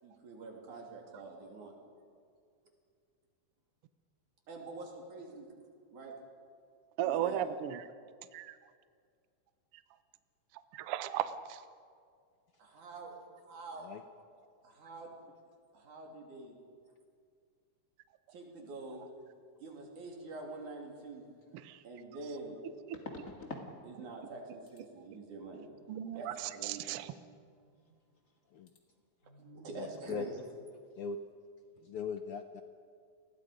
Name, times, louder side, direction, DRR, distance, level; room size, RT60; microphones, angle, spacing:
voice 1, 0.0-1.7 4.5-5.5 5.9-6.1 7.0-7.4 12.6-13.9 14.6-15.1 15.7-16.6 18.3-19.1 19.6-21.3 21.8-22.6 23.8-25.7 26.1-27.0 27.8-27.9 29.2-30.4, right 3 dB, 85° right, 0 dB, 4.6 m, -46 dB
voice 2, 7.0-7.8 8.3-8.6 10.7-11.6 21.6-21.8 22.9-23.3 25.9-27.1, right 11 dB, 65° right, 11 dB, 1.5 m, -36 dB
sound 1, 21.4-21.5 22.9-23.7 24.0-24.4 24.7-24.8 27.8-27.9 28.1-28.4 28.7-28.8, left 3 dB, 30° left, 2.1 m, -46 dB
voice 3, 29.8-30.3 31.0-31.2 31.8-32.6, left 6 dB, 70° left, 7 dB, 1.4 m, -40 dB
29.5 x 20.0 x 5.2 m, 2.1 s
omnidirectional pair, 3.4 m